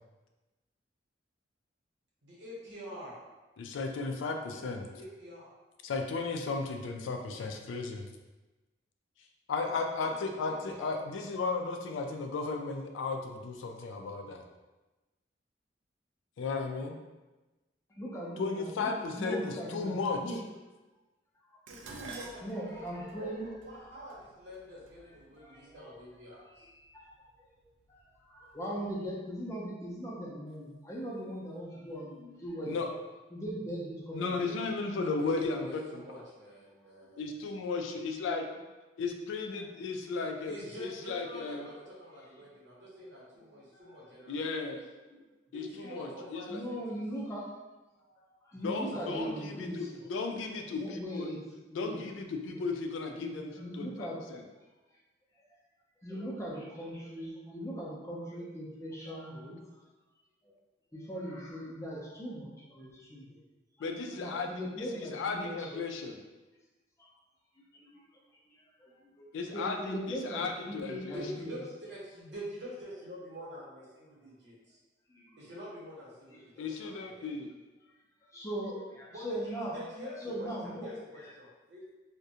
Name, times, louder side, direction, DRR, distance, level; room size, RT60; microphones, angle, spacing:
voice 1, 2.2-3.2 4.5-5.5 7.3-7.5 10.0-10.9 21.7-26.6 34.9-35.3 35.6-37.2 37.5-37.6 40.4-44.4 45.5-46.8 48.8-49.5 49.9-50.1 50.5-50.6 71.0-74.8 75.4-76.4 76.7-77.3 79.1-81.8, equal, 70° right, -6 dB, 0.9 m, -46 dB
voice 2, 3.6-4.9 5.8-8.1 9.5-14.4 16.4-17.0 18.4-20.4 32.6-32.9 34.1-36.0 37.2-38.4 39.0-41.6 44.3-44.8 45.5-46.6 48.6-51.3 51.8-54.4 59.1-59.2 63.8-64.5 65.0-66.2 69.3-71.1 76.6-77.5, left 4 dB, 85° left, 4 dB, 0.3 m, -35 dB
voice 3, 17.9-20.4 21.5-21.6 22.4-23.5 23.9-24.0 25.1-26.0 26.5-27.3 27.6-32.7 33.3-34.6 39.6-39.7 43.7-44.0 45.1-45.2 46.5-47.5 48.2-49.9 50.7-51.4 51.7-52.0 52.4-52.6 53.1-54.2 55.4-55.5 56.0-59.6 60.4-60.5 60.9-63.4 64.1-65.8 67.0-67.1 67.7-68.1 68.5-71.6 75.1-75.4 76.3-76.7 78.2-79.8 80.2-80.9 81.1-81.3, equal, 15° left, -5 dB, 0.4 m, -40 dB
Dishes pots and pans, 21.7-26.0 26.9-27.3 27.7-28.5 28.8-28.9, right 3 dB, 85° right, 0.3 m, -50 dB
2.4 x 2.1 x 2.7 m, 1.1 s
head